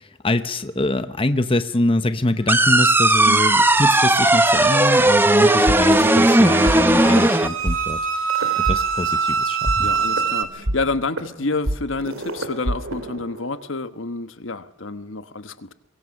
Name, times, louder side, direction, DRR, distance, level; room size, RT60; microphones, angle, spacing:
voice 1, 0.0-9.7, left 1 dB, 25° left, 11 dB, 1.0 m, -24 dB
sound 1, 2.5-7.5, right 1 dB, 10° right, 0.9 m, -16 dB
sound 2, 2.9-10.4, right 6 dB, 70° right, 3.4 m, -26 dB
voice 2, 3.2-3.6 5.6-5.8 9.8-15.7, left 3 dB, 70° left, 11 dB, 1.3 m, -28 dB
sound 3, 5.7-6.8 7.0-7.3 7.7-7.8 8.3-9.3 9.7-13.7, right 1 dB, 85° right, 2.8 m, -27 dB
23.5 x 23.0 x 6.6 m, 0.92 s
head